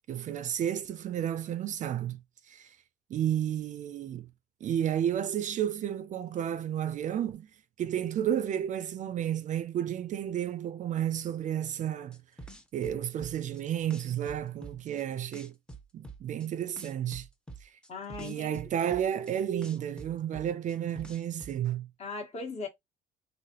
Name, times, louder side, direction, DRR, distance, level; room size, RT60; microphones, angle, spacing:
voice 1, 0.1-2.2 2.5-2.7 3.1-4.3 4.6-7.5 7.8-12.2 12.7-15.5 15.9-17.3 18.2-21.9, right 10 dB, 50° right, 0.4 m, -32 dB
sound 1, 12.1-13.6 13.9-15.0 15.3-16.5 16.8-19.3 19.6-21.6, right 2 dB, 5° left, 0.6 m, -46 dB
voice 2, 17.9-18.7 22.0-22.7, left 4 dB, 40° left, 1.2 m, -38 dB
3.2 x 2.6 x 2.8 m
cardioid pair, 110°, 17 cm